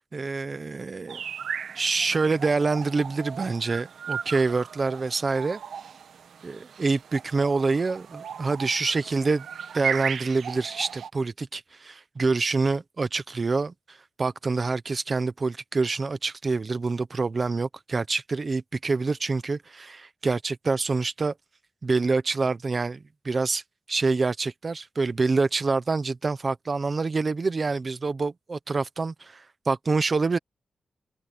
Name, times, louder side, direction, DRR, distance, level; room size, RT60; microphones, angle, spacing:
voice 1, 0.1-1.2 1.7-5.6 6.4-9.5 9.7-21.3 21.8-23.6 23.9-30.4, right 4 dB, 30° right, 0.9 m, -26 dB
sound 1, 1.1-11.1, right 7 dB, 85° right, 1.6 m, -36 dB
open air
wide cardioid pair, 160°, 0 cm